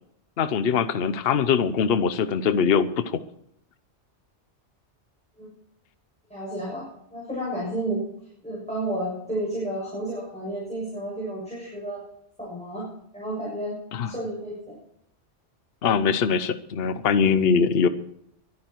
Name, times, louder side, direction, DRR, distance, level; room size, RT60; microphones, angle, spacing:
voice 1, 0.4-3.2 13.9-14.1 15.8-17.9, left 6 dB, 60° left, 12 dB, 1.0 m, -22 dB
voice 2, 6.3-8.1 8.4-12.0 12.4-12.9 13.1-13.7 14.0-14.8, right 1 dB, 5° left, -6 dB, 7.1 m, -31 dB
23.0 x 9.8 x 4.6 m, 0.73 s
omnidirectional pair, 1.2 m